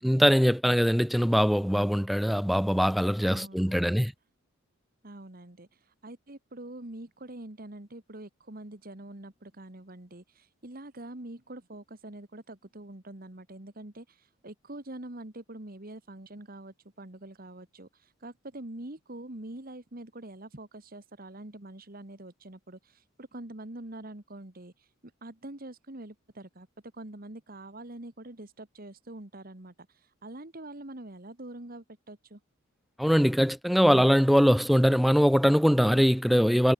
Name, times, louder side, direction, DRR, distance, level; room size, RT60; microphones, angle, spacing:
voice 1, 0.0-4.1 33.0-36.7, equal, ahead, 0.8 m, -22 dB
voice 2, 3.2-4.1 5.0-24.9 25.2-26.7 26.9-32.4, right 1 dB, 45° right, 2.0 m, -45 dB
head